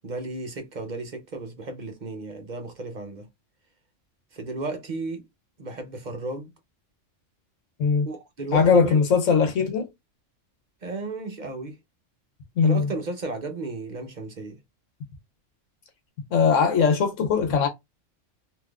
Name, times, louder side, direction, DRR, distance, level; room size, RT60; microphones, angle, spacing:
voice 1, 0.0-3.3 4.3-5.2 5.6-6.5 8.1-9.0 10.8-11.8 12.6-14.6, right 3 dB, 45° right, 0.8 m, -34 dB
voice 2, 8.5-9.9 12.6-12.9 16.3-17.7, left 5 dB, 85° left, 1.1 m, -20 dB
3.4 x 2.7 x 2.3 m
omnidirectional pair, 1.3 m